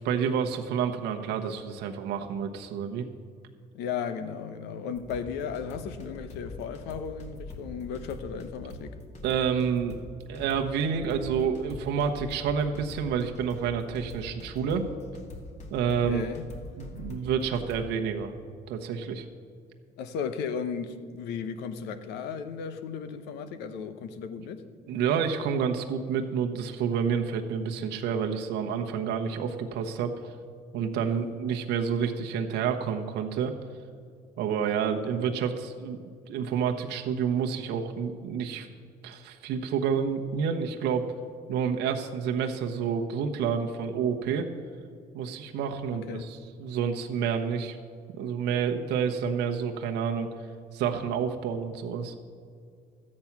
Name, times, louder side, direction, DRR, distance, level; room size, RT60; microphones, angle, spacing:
voice 1, 0.0-3.1 9.2-10.0 10.3-14.9 15.7-16.2 16.8-18.3 18.7-19.2 24.9-30.3 30.7-33.5 34.4-36.0 36.3-38.7 39.0-41.1 41.5-44.5 45.1-47.8 48.1-50.3 50.7-52.1, right 7 dB, 85° right, 1.1 m, -29 dB
voice 2, 3.7-9.0 15.9-16.5 20.0-24.6 31.0-31.3 46.1-46.3, left 6 dB, 90° left, 0.9 m, -35 dB
sound 1, 4.9-17.9, left 2 dB, 40° left, 2.0 m, -43 dB
13.0 x 8.7 x 5.9 m
cardioid pair, 110°, 17 cm